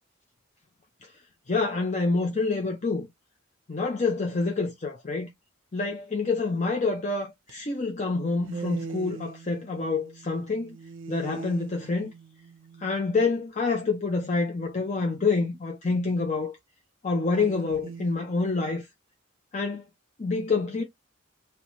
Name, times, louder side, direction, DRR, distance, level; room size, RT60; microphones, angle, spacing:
voice 1, 1.5-3.1 3.7-5.3 5.7-10.8 11.1-12.1 12.8-16.6 17.0-18.9 19.5-19.8 20.2-20.8, left 3 dB, 35° left, 0.6 m, -27 dB
sound 1, 7.5-7.6 8.4-13.1 17.3-18.1, right 4 dB, 65° right, 0.6 m, -41 dB
3.2 x 2.9 x 3.0 m
head